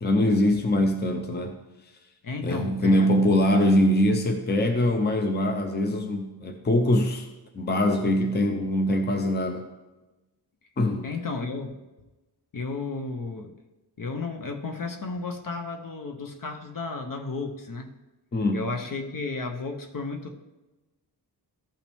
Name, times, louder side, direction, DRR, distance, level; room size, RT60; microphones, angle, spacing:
voice 1, 0.0-1.6 2.4-7.3 7.5-9.6 10.8-11.1 18.3-18.7, left 1 dB, 25° left, 5 dB, 0.7 m, -23 dB
voice 2, 2.2-3.2 11.0-11.8 12.5-13.5 14.0-17.9 18.5-20.4, left 3 dB, 50° left, 5 dB, 0.9 m, -33 dB
14.0 x 5.7 x 3.5 m, 1.1 s
wide cardioid pair, 170°, 41 cm